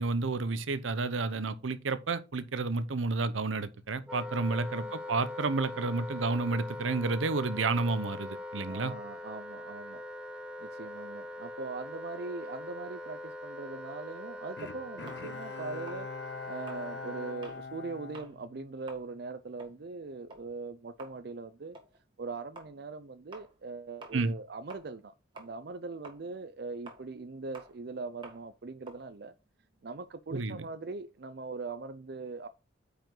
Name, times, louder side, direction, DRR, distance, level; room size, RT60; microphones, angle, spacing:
voice 1, 0.0-8.9 24.1-24.3 30.3-30.6, right 3 dB, 80° right, 0.8 m, -31 dB
Wind instrument woodwind instrument, 4.1-17.4, left 2 dB, 5° right, 0.8 m, -42 dB
voice 2, 4.5-4.9 8.7-10.0 10.6-16.1 16.5-21.8 22.2-29.3 29.8-32.5, right 3 dB, 55° right, 0.5 m, -41 dB
Bowed string instrument, 14.6-19.1 19.5-19.6, left 4 dB, 60° left, 0.6 m, -43 dB
sound 1, 15.1-17.7 18.0-18.4 18.7-25.1 25.4-30.1, right 2 dB, 25° right, 1.8 m, -52 dB
9.1 x 5.1 x 3.8 m
head